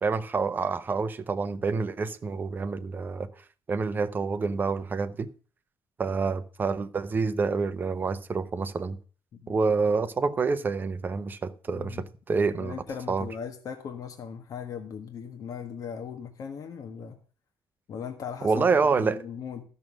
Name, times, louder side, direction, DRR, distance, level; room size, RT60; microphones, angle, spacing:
voice 1, 0.0-3.3 3.7-5.3 6.0-9.0 9.5-12.8 13.1-13.3 18.4-19.2, right 4 dB, 25° right, 0.8 m, -27 dB
voice 2, 11.7-12.0 12.6-17.2 17.9-18.7 19.0-19.6, left 7 dB, 50° left, 1.5 m, -38 dB
13.0 x 6.4 x 6.2 m
cardioid pair, 140°, 7 cm